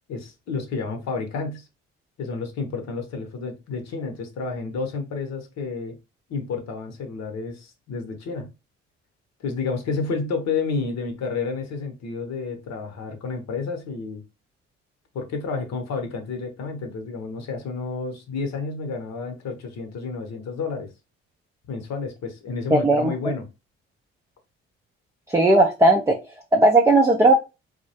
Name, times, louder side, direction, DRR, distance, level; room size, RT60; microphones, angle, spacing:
voice 1, 0.1-1.7 2.2-6.0 6.3-8.5 9.4-14.2 15.1-20.9 21.7-23.5, left 4 dB, 60° left, 0.8 m, -30 dB
voice 2, 22.7-23.1 25.3-26.2 26.5-27.3, right 2 dB, 10° right, 0.4 m, -16 dB
2.2 x 2.0 x 2.7 m
hypercardioid pair, 55°, 31 cm